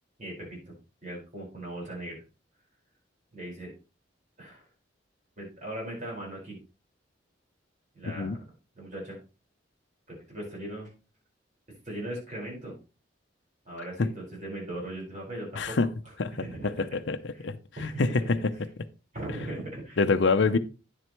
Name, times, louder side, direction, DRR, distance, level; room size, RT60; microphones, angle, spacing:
voice 1, 0.2-0.8 1.0-2.2 3.3-3.7 4.4-4.7 5.4-6.6 7.9-8.4 8.7-9.2 10.1-10.9 11.8-12.7 13.6-15.8 16.0-16.8 17.3-17.5 17.8-18.6 19.1-20.0 20.4-20.5, right 1 dB, 40° right, 4.8 m, -39 dB
voice 2, 8.0-8.4 14.0-14.1 15.6-15.9 16.2-16.3 16.8-17.2 17.4-18.4 20.0-20.6, left 4 dB, 70° left, 0.6 m, -25 dB
10.0 x 7.7 x 3.0 m
head